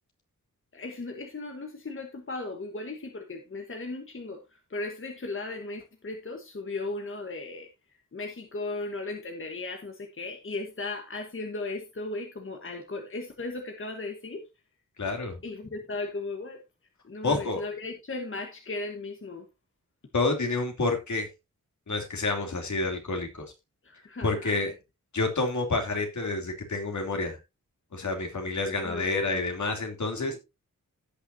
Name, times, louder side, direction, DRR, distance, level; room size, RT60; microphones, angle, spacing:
voice 1, 0.7-4.4 4.7-7.7 8.1-14.4 15.4-16.6 17.0-19.4 23.8-24.7 28.8-29.5 30.1-30.3, left 3 dB, 40° left, 1.3 m, -36 dB
voice 2, 15.0-15.4 17.2-17.6 20.1-21.3 21.9-23.4 24.2-24.7 25.1-27.4 27.9-30.3, left 3 dB, 60° left, 3.0 m, -28 dB
17.0 x 5.9 x 2.7 m
wide cardioid pair, 90°, 32 cm